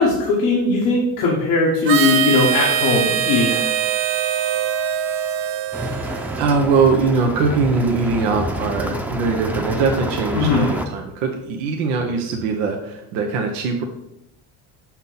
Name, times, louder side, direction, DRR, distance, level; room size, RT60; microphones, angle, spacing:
voice 1, 0.0-3.6 10.3-10.7, left 3 dB, 85° left, -3 dB, 1.3 m, -18 dB
Harmonica, 1.8-6.6, right 9 dB, 55° right, 0.8 m, -22 dB
sound 1, 5.7-10.9, equal, 5° right, 0.7 m, -28 dB
voice 2, 5.7-13.9, right 4 dB, 85° right, 2 dB, 0.9 m, -21 dB
5.9 x 5.6 x 3.9 m, 0.82 s
hypercardioid pair, 70°, 44 cm